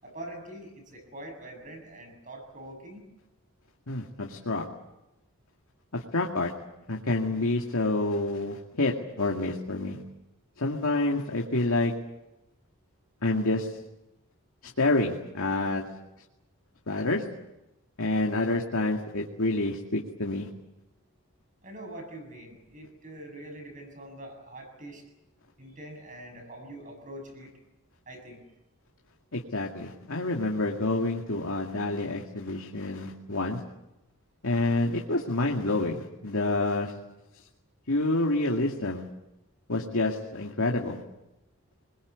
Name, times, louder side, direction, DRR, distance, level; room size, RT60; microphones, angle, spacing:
voice 1, 0.0-3.1 21.6-25.0 25.6-27.5 28.1-28.4, right 1 dB, 35° right, 4 dB, 7.5 m, -44 dB
voice 2, 3.9-4.6 5.9-6.5 6.9-10.0 10.6-11.9 13.2-13.7 14.8-15.8 16.9-17.2 18.0-20.5 29.3-33.6 34.4-36.9 37.9-39.0 39.7-41.0, left 2 dB, 85° left, 0 dB, 2.3 m, -28 dB
26.5 x 22.0 x 8.3 m, 0.93 s
head